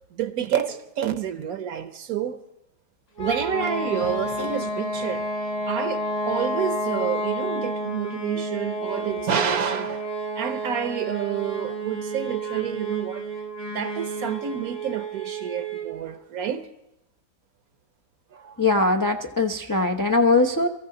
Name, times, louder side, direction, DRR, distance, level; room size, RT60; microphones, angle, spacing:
voice 1, 0.1-2.4 3.2-5.3 5.6-10.1 10.4-13.3 13.7-16.7 18.3-18.6, right 8 dB, 65° right, 1.2 m, -29 dB
sound 1, 3.2-16.0, right 1 dB, 85° left, 3.7 m, -30 dB
voice 2, 18.6-20.7, left 3 dB, 30° left, 0.3 m, -21 dB
23.5 x 14.5 x 3.8 m
omnidirectional pair, 1.7 m